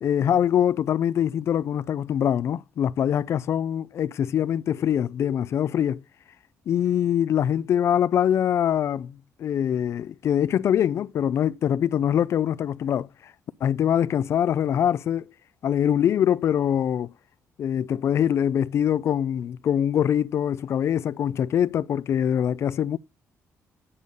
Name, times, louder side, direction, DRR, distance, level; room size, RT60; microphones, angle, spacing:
voice 1, 0.0-6.0 6.7-13.1 13.6-15.3 15.6-17.1 17.6-23.0, left 9 dB, 55° left, 0.4 m, -23 dB
8.6 x 8.5 x 5.4 m
cardioid pair, 145°, 6 cm